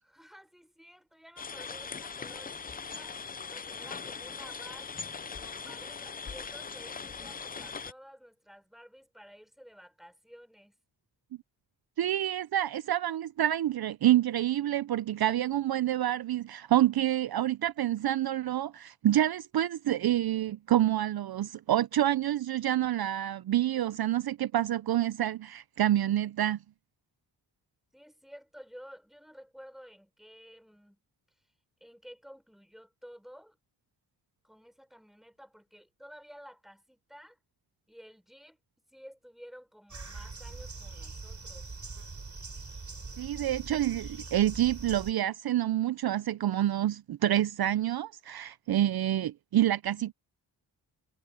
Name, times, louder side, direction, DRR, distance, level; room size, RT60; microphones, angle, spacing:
voice 1, 0.0-5.0 5.4-10.8 27.9-31.0 31.8-33.6 34.4-37.4 37.9-38.6 38.9-41.7, equal, ahead, 5.9 m, -52 dB
sound 1, 1.4-7.9, left 5 dB, 20° left, 0.4 m, -40 dB
voice 2, 12.0-26.6 43.2-50.1, right 12 dB, 60° right, 0.5 m, -27 dB
sound 2, 39.9-45.1, right 4 dB, 40° right, 3.7 m, -42 dB
cardioid pair, 75°, 42 cm